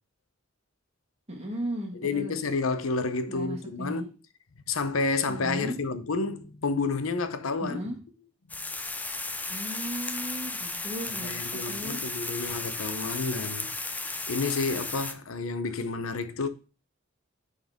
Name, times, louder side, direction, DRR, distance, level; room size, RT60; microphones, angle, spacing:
voice 1, 1.3-2.4 3.3-4.1 5.3-5.8 7.6-8.0 9.5-12.0, right 1 dB, 30° right, 1.9 m, -36 dB
voice 2, 2.0-4.1 4.7-7.8 11.1-16.5, left 4 dB, 85° left, 0.7 m, -30 dB
sound 1, 8.5-15.1, left 3 dB, 10° left, 0.5 m, -34 dB
10.5 x 4.0 x 3.6 m
head